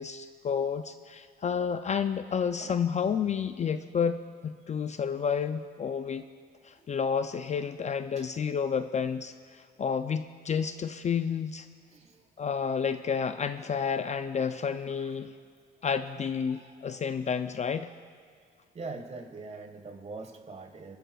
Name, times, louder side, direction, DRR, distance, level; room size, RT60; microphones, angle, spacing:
voice 1, 0.0-6.2 6.7-11.7 12.4-15.3 15.8-17.9, left 6 dB, 35° left, 10 dB, 0.4 m, -30 dB
voice 2, 11.9-12.2 14.8-15.2 15.8-15.9 16.5-17.0 17.9-18.1 18.7-21.0, right 3 dB, 35° right, 6 dB, 1.5 m, -44 dB
24.5 x 11.5 x 2.3 m, 2.2 s
cardioid pair, 90°, 20 cm